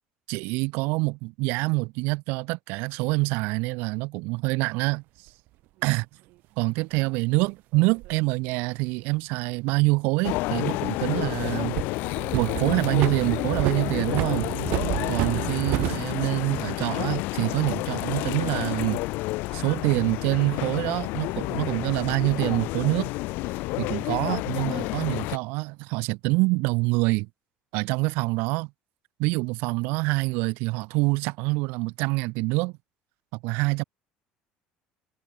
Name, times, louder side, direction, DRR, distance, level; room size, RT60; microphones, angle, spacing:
voice 1, 0.3-5.3 5.8-6.1 6.6-11.8 12.3-14.5 15.1-19.0 19.5-23.1 23.8-27.3 27.7-28.7 29.2-32.8 33.4-33.8, right 26 dB, 75° right, 7.3 m, -26 dB
sound 1, 5.3-5.4 6.9-8.2 10.4-11.4 11.8-16.0, right 19 dB, 60° right, 1.8 m, -31 dB
sound 2, 10.2-25.4, left 22 dB, 70° left, 5.0 m, -30 dB
cardioid pair, 170°, 3 cm